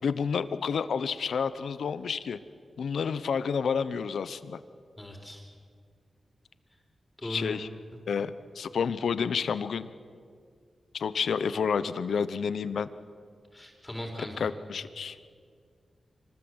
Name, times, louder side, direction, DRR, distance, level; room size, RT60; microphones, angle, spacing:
voice 1, 0.0-2.4 2.8-4.6 7.2-7.7 8.1-9.9 10.9-12.9 14.4-15.2, left 6 dB, 85° left, 14 dB, 0.9 m, -30 dB
voice 2, 5.0-5.4 7.2-7.6 13.5-14.4, left 1 dB, 15° left, 0 dB, 4.4 m, -38 dB
25.0 x 19.5 x 8.0 m, 2.1 s
cardioid pair, 55°, 0 cm